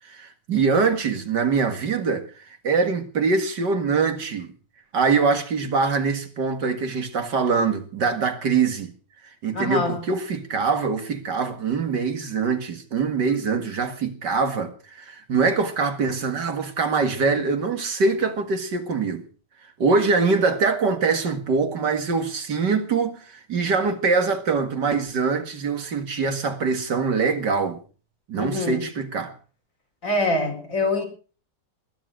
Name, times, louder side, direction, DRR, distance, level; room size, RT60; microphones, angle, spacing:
voice 1, 0.1-2.2 2.6-4.5 4.9-8.9 9.4-19.2 19.8-27.8 28.3-29.3, right 4 dB, 75° right, 2.6 m, -23 dB
voice 2, 9.5-10.0 28.4-28.8 30.0-31.0, left 2 dB, 45° left, 4.9 m, -24 dB
20.0 x 10.5 x 6.4 m
omnidirectional pair, 1.9 m